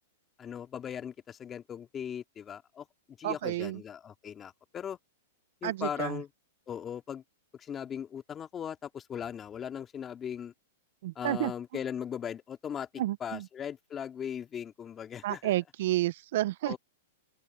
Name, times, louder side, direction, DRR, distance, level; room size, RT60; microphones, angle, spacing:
voice 1, 0.4-2.9 3.2-5.0 5.6-6.3 6.7-7.2 7.6-10.5 11.2-12.9 13.2-15.5 16.7-16.8, left 8 dB, 20° left, 2.4 m, -38 dB
voice 2, 3.2-3.8 5.6-6.2 11.0-11.5 13.0-13.5 15.2-16.8, right 15 dB, 60° right, 0.5 m, -31 dB
hypercardioid pair, 135°, 0 cm